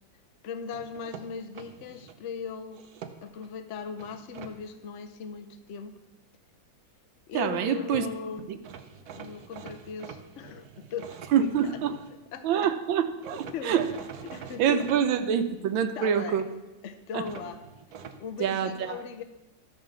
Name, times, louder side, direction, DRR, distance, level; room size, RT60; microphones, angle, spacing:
voice 1, 0.4-2.8 3.2-5.9 7.3-8.5 9.1-11.8 12.1-12.7 13.5-15.0 16.0-16.5 16.8-17.6 18.2-19.2, left 6 dB, 80° left, 8 dB, 0.6 m, -39 dB
sound 1, 0.7-2.2 2.7-3.5 4.0-4.5 7.6-7.7 7.9-8.1 8.6-12.1 13.2-15.0 17.2-18.2, right 7 dB, 60° right, 1.1 m, -45 dB
voice 2, 7.3-8.1 8.5-8.6 11.3-11.9 12.4-13.9 14.6-16.4 17.1-17.2 18.4-19.0, right 8 dB, 80° right, 9 dB, 1.5 m, -26 dB
13.0 x 5.7 x 7.1 m, 1.0 s
omnidirectional pair, 2.1 m